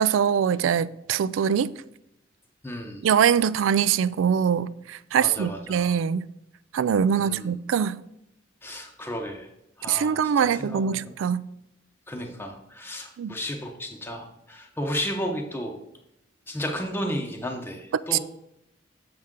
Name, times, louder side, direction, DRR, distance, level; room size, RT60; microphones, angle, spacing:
voice 1, 0.0-1.7 3.0-6.3 6.7-8.0 9.9-11.5 13.2-13.3 18.1-18.2, right 8 dB, 90° right, 0.3 m, -23 dB
voice 2, 2.6-3.0 5.2-6.0 7.1-7.6 8.6-9.5 9.8-11.1 12.1-15.7 16.5-18.2, equal, 10° left, 0.7 m, -33 dB
7.7 x 5.5 x 3.6 m
head